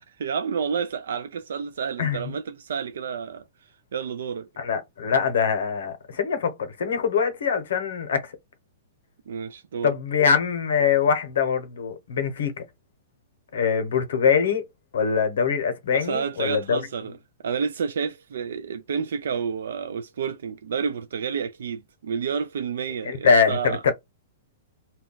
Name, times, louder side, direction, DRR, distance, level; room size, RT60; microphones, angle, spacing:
voice 1, 0.1-3.4 3.9-4.5 9.3-9.9 15.9-17.2 17.4-23.8, right 6 dB, 75° right, 0.3 m, -30 dB
voice 2, 4.6-8.3 9.8-12.6 13.5-14.6 14.9-16.8 23.0-23.9, left 6 dB, 70° left, 0.8 m, -23 dB
2.2 x 2.2 x 3.7 m
hypercardioid pair, 175°, 0 cm